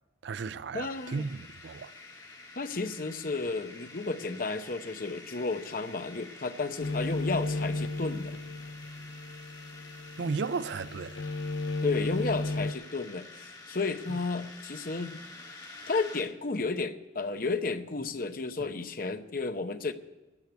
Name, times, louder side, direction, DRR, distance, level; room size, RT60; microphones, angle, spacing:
voice 1, 0.2-1.9 10.2-11.2 14.1-14.2, right 4 dB, 75° right, 0.4 m, -34 dB
voice 2, 0.7-1.2 2.6-8.3 11.8-15.2 15.9-19.9, left 3 dB, 50° left, 0.8 m, -32 dB
sound 1, 0.9-16.2, left 3 dB, 20° left, 1.7 m, -49 dB
sound 2, 6.8-12.7, left 2 dB, 80° left, 0.6 m, -34 dB
13.0 x 8.3 x 9.4 m
head